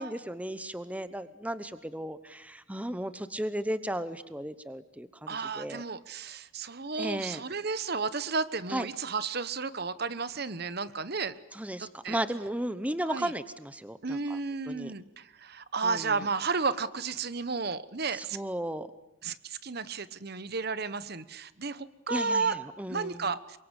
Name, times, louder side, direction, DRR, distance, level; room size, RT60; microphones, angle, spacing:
voice 1, 0.0-5.1 5.6-5.8 7.0-7.4 8.7-8.9 11.5-14.4 14.7-14.9 15.8-16.2 18.1-18.9 22.1-23.3, right 1 dB, 5° right, 12 dB, 0.9 m, -35 dB
voice 2, 5.3-11.4 11.8-12.2 13.1-13.3 14.0-18.4 19.2-22.6 22.9-23.6, right 4 dB, 50° right, 15 dB, 1.1 m, -33 dB
27.5 x 24.0 x 8.2 m, 0.90 s
head